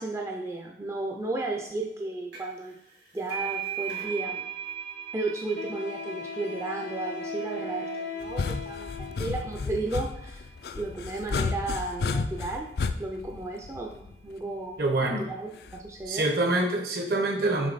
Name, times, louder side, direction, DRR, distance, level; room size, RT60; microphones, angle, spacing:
voice 1, 0.0-2.7 3.1-4.4 5.1-10.5 10.7-12.7 13.0-16.2, right 2 dB, 15° right, 0 dB, 0.4 m, -34 dB
sound 1, 2.3-2.6 2.9-10.2, right 9 dB, 70° right, 2.3 m, -39 dB
Wind instrument woodwind instrument, 4.3-4.4 5.6-9.6, left 3 dB, 80° left, 0.8 m, -38 dB
sound 2, 8.2-14.3 15.7-16.1, left 4 dB, 60° left, 0.3 m, -32 dB
voice 2, 14.8-15.3 16.1-17.7, right 2 dB, 55° right, 3 dB, 0.9 m, -25 dB
6.3 x 3.8 x 4.0 m, 0.79 s
head